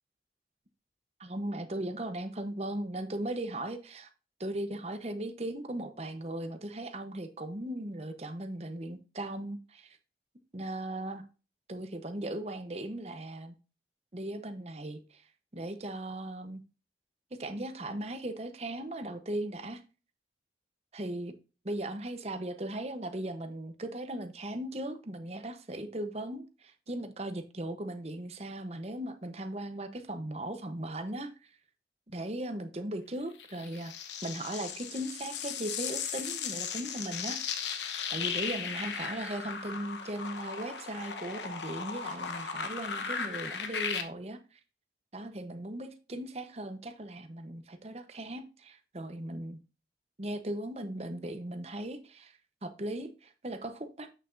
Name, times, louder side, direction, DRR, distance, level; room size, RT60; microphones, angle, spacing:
voice 1, 1.2-4.1 4.4-10.0 10.5-11.2 11.7-13.5 14.1-15.2 15.5-16.6 17.3-19.8 20.9-21.3 21.6-31.5 32.1-33.9 34.2-37.4 38.1-44.6 45.1-49.6 50.2-54.1, right 1 dB, 35° right, 0.9 m, -38 dB
sound 1, 33.4-44.0, left 6 dB, 85° left, 1.1 m, -37 dB
8.3 x 6.6 x 2.6 m
head